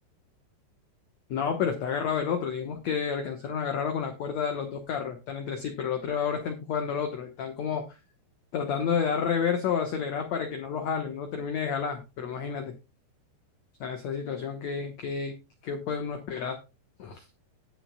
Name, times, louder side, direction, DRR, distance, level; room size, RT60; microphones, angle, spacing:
voice 1, 1.3-8.0 8.5-12.7 13.8-15.4 15.6-16.6 17.0-17.2, left 6 dB, 85° left, 5 dB, 1.5 m, -30 dB
18.5 x 6.2 x 2.2 m, 0.27 s
omnidirectional pair, 5.0 m